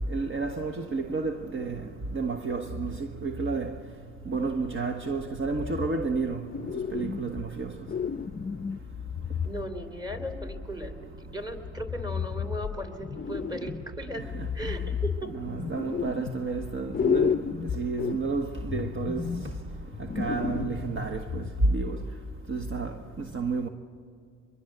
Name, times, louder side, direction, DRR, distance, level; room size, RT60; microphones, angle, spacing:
voice 1, 0.1-1.9 2.1-3.7 4.3-6.4 6.9-7.7 14.3-14.7 15.3-17.4 17.7-19.3 20.2-21.4 21.7-22.0 22.5-23.0 23.3-23.7, right 4 dB, 40° right, 1.3 m, -31 dB
sound 1, 5.4-6.3 6.5-7.5 7.9-10.7 11.5-13.9 14.2-16.7 16.9-21.9, left 7 dB, 30° left, 0.6 m, -33 dB
voice 2, 9.4-14.3 14.5-15.3, right 1 dB, 15° right, 3.3 m, -37 dB
24.0 x 22.5 x 8.0 m
cardioid pair, 90°, 30 cm